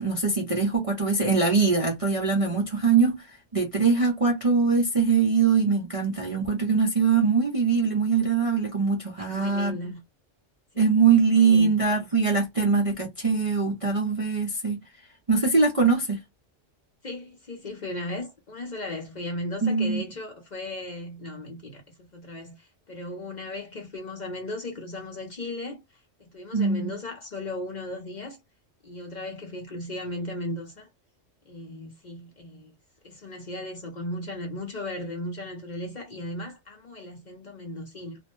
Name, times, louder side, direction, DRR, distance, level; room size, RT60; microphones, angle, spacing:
voice 1, 0.0-9.8 10.8-14.8 15.3-16.2 19.6-20.0 26.5-26.9, right 5 dB, 40° right, 0.5 m, -22 dB
voice 2, 9.2-10.0 10.7-10.9 11.3-11.7 17.0-25.8 26.2-28.4 28.8-30.9 31.5-32.8 33.0-38.2, left 1 dB, 45° left, 0.7 m, -36 dB
2.5 x 2.1 x 3.0 m
omnidirectional pair, 1.3 m